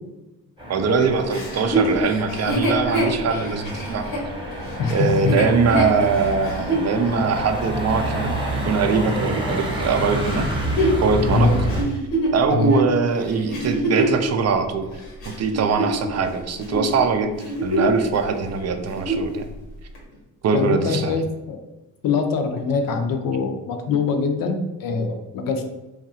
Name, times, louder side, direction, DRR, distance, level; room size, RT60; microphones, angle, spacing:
Motor vehicle (road), 0.6-11.8, right 1 dB, 15° right, 0.9 m, -28 dB
voice 1, 0.7-4.1 4.9-8.3 8.6-10.5 11.0-11.5 12.3-14.9 15.3-17.3 17.6-19.5 20.4-21.1, right 5 dB, 45° right, 7 dB, 0.4 m, -22 dB
Chuckle chortle, 1.3-6.9 7.5-7.6 10.2-14.2 14.8-16.3 16.6-16.9 17.3-18.0 18.3-18.4 18.8-19.3 19.9-20.0, right 1 dB, 85° left, 0.9 m, -25 dB
voice 2, 4.8-5.4 11.3-11.6 12.5-12.7 20.5-21.6 22.0-25.6, left 5 dB, 65° left, 5 dB, 0.6 m, -23 dB
2.8 x 2.4 x 2.7 m, 1.1 s
cardioid pair, 85°, 36 cm